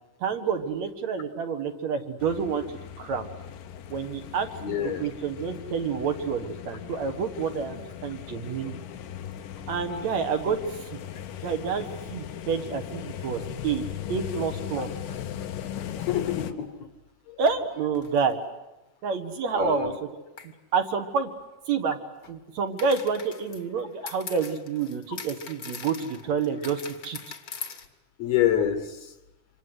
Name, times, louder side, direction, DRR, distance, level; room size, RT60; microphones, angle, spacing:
voice 1, 0.2-2.6 3.0-3.3 3.9-8.8 9.7-11.0 11.4-14.9 17.4-18.4 19.0-19.9 20.7-21.3 21.7-22.0 22.3-27.2, right 5 dB, 60° right, 6 dB, 2.7 m, -28 dB
sound 1, 2.2-16.5, left 10 dB, 85° left, 2.9 m, -38 dB
voice 2, 4.6-5.0 9.9-10.0 14.8-14.9 16.0-16.9 17.3-17.4 19.5-19.9 28.2-29.1, left 10 dB, 60° left, 10 dB, 2.1 m, -27 dB
sound 2, 17.9-18.3 20.4-20.5 22.8-27.9, left 5 dB, 40° left, 1.4 m, -41 dB
27.0 x 26.0 x 8.1 m, 0.98 s
omnidirectional pair, 3.7 m